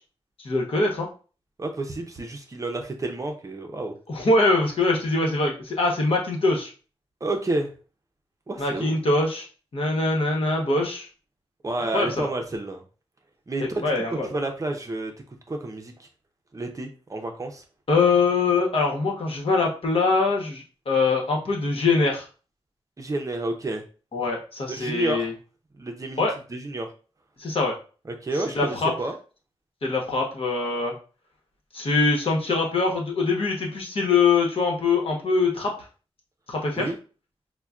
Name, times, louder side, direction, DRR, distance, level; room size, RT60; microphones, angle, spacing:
voice 1, 0.4-1.1 4.1-6.7 8.6-9.5 9.7-11.1 11.9-12.3 13.8-14.3 17.9-22.3 24.1-25.3 26.2-26.4 27.4-27.7 28.5-28.9 29.8-30.9 31.7-35.7 36.5-36.9, left 3 dB, 60° left, 0 dB, 1.0 m, -23 dB
voice 2, 1.6-3.9 7.2-7.7 8.5-9.0 11.6-12.8 13.5-16.1 16.5-17.6 23.0-23.8 24.7-25.3 25.8-26.2 26.5-26.9 28.1-29.1 36.8-37.0, right 2 dB, 30° right, 3 dB, 0.6 m, -30 dB
5.5 x 2.2 x 2.4 m, 0.36 s
wide cardioid pair, 125°, 11 cm